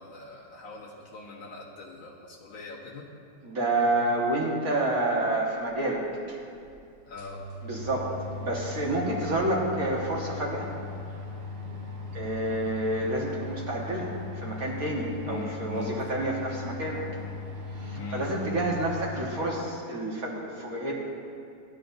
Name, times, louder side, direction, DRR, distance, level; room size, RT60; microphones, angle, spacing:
voice 1, 0.0-3.0 7.1-7.4 15.2-16.1 18.0-18.3, left 4 dB, 85° left, -4 dB, 2.0 m, -42 dB
voice 2, 3.4-6.4 7.6-10.7 12.1-17.0 17.8-20.9, right 1 dB, 50° right, -3 dB, 1.9 m, -29 dB
sound 1, 5.9-6.0 6.6-6.7 7.0-19.1, left 3 dB, 75° right, 2.8 m, -38 dB
17.5 x 11.0 x 2.7 m, 2.4 s
omnidirectional pair, 2.1 m